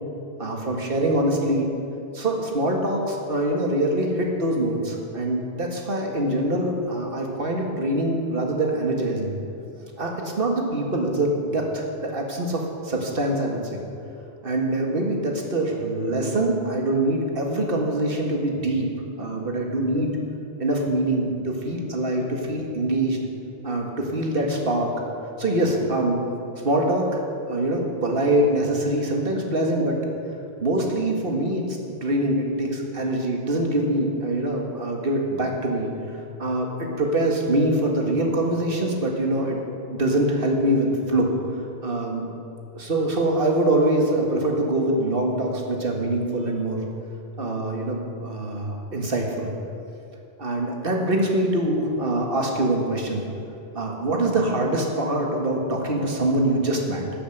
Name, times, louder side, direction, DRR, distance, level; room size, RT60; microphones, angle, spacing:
voice 1, 0.4-1.7 2.1-9.3 10.0-13.8 14.4-18.9 19.2-20.2 20.6-23.2 23.6-24.9 25.4-26.3 26.6-30.0 30.6-35.9 36.4-39.6 39.9-41.3 41.8-42.3 42.7-46.8 47.4-49.5 50.4-53.2 53.7-57.0, right 1 dB, 50° right, 1 dB, 2.0 m, -24 dB
12.0 x 8.9 x 7.9 m, 2.6 s
omnidirectional pair, 1.2 m